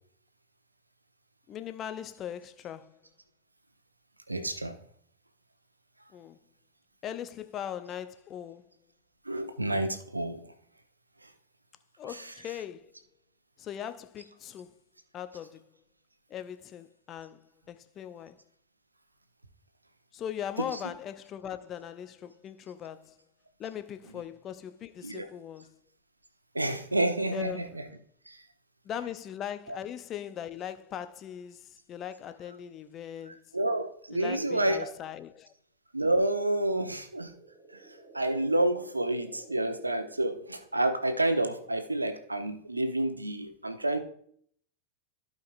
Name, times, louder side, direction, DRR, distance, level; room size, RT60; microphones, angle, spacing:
voice 1, 1.5-3.0 6.1-6.4 7.0-8.7 12.0-12.9 13.6-14.7 15.1-15.6 16.3-17.4 17.7-18.4 20.1-23.1 23.6-25.7 27.3-27.8 28.9-31.6 31.9-33.4 34.1-35.5, left 9 dB, 30° left, 0.6 m, -39 dB
voice 2, 4.3-4.8 9.2-10.4 11.2-11.3 12.0-12.6 20.6-20.8 25.0-25.3 26.5-27.9 28.3-28.4 29.7-29.8 33.2-34.9 35.9-37.3 37.7-44.0, right 1 dB, 85° right, 0.9 m, -29 dB
sound 1, 36.9-41.2, right 1 dB, 5° left, 2.9 m, -54 dB
15.0 x 5.3 x 2.5 m
figure-of-eight pair, 90°, 0 cm